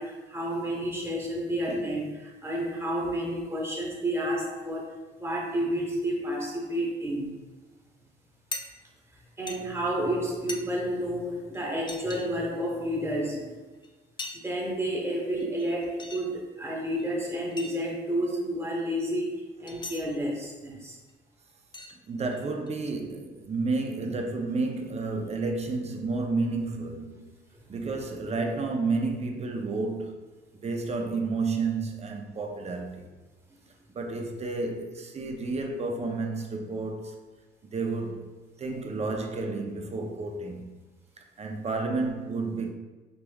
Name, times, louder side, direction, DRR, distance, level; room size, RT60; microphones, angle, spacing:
voice 1, 0.0-7.4 9.4-13.7 14.4-21.0, equal, 15° right, 1.1 m, -30 dB
sound 1, 8.5-8.6 9.5-9.6 10.5-10.6 11.5-11.6 11.9-12.3 13.8-13.9 14.2-14.6 15.4-16.2 17.0-17.1 17.5-17.7 19.7-20.1 21.1-21.2 21.7-21.9 22.3-22.9, left 3 dB, 25° left, 0.4 m, -39 dB
voice 2, 22.1-27.4 27.7-30.1 30.6-33.1 33.9-37.2 37.6-38.3 38.6-40.8 41.4-42.7, right 3 dB, 35° right, 0.6 m, -31 dB
5.1 x 2.9 x 2.3 m
cardioid pair, 90°, 20 cm